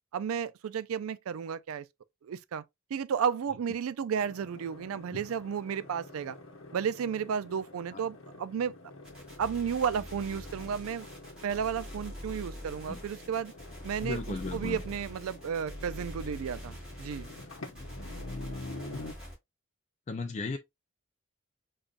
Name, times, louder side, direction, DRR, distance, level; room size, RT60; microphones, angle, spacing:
voice 1, 0.1-1.9 2.2-2.6 2.9-6.4 6.7-8.7 9.4-11.1 11.4-13.5 13.8-17.3, right 7 dB, 85° right, 0.4 m, -33 dB
sound 1, 4.2-19.1, left 2 dB, 75° left, 0.8 m, -47 dB
sound 2, 9.0-19.3, equal, 5° right, 2.2 m, -44 dB
voice 2, 14.0-14.8 18.9-19.0 20.1-20.6, left 3 dB, 35° left, 0.4 m, -35 dB
5.2 x 2.3 x 2.4 m
head